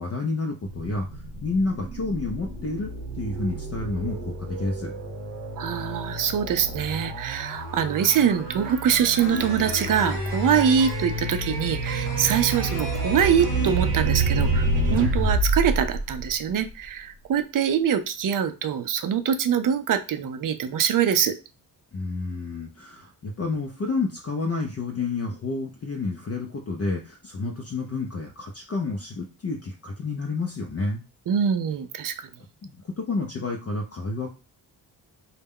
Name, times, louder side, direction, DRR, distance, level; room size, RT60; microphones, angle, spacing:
voice 1, 0.0-4.9 21.9-31.0 32.6-34.3, left 3 dB, 35° left, 1 dB, 0.5 m, -30 dB
sound 1, 0.7-16.9, right 2 dB, 90° right, 0.8 m, -29 dB
voice 2, 5.6-21.3 31.3-32.3, right 8 dB, 50° right, 10 dB, 0.5 m, -24 dB
sound 2, 7.5-7.6 7.8-14.4 14.7-14.8 15.1-15.9, left 2 dB, 75° left, 0.8 m, -36 dB
2.2 x 2.1 x 3.5 m, 0.31 s
cardioid pair, 65°, 42 cm